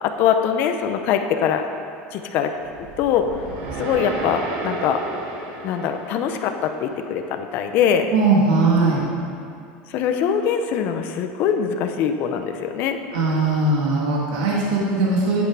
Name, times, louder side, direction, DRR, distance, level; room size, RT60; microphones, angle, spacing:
voice 1, 0.0-1.6 2.1-2.5 3.0-3.3 3.8-5.0 5.6-8.1 9.9-13.0, left 8 dB, 50° left, 6 dB, 0.7 m, -22 dB
sound 1, 2.6-6.9, right 3 dB, 55° right, 1.5 m, -32 dB
voice 2, 8.1-9.0 13.1-15.4, right 3 dB, 85° right, -4 dB, 1.9 m, -19 dB
9.6 x 8.2 x 4.9 m, 2.4 s
cardioid pair, 150°, 4 cm